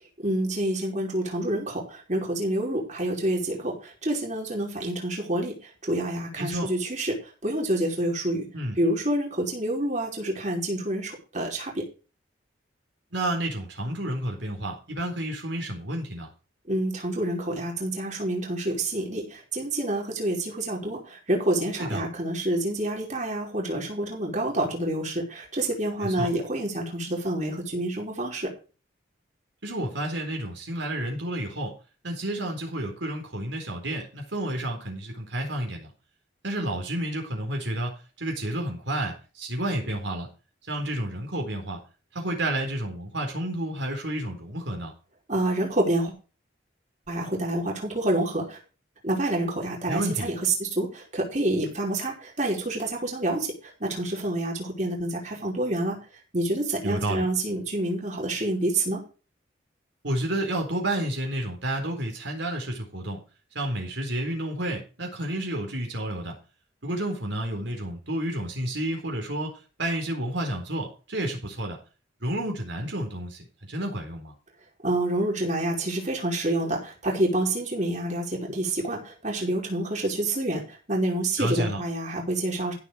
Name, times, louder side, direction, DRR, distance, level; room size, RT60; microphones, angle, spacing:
voice 1, 0.2-5.5 5.8-7.2 7.4-8.5 8.8-11.9 16.7-28.5 45.3-46.1 47.1-48.6 49.0-56.0 56.3-59.0 74.8-80.6 80.9-82.7, right 1 dB, 40° right, -1 dB, 5.0 m, -28 dB
voice 2, 6.4-6.7 8.5-8.8 13.1-16.3 21.8-22.0 26.0-26.3 29.6-31.7 32.0-35.9 36.4-40.3 40.7-41.8 42.1-44.9 49.9-50.3 56.8-57.3 60.0-63.2 63.5-66.4 66.8-69.5 69.8-71.8 72.2-74.3 81.4-81.8, right 1 dB, 70° right, 2 dB, 4.2 m, -30 dB
15.0 x 7.4 x 5.0 m, 0.34 s
head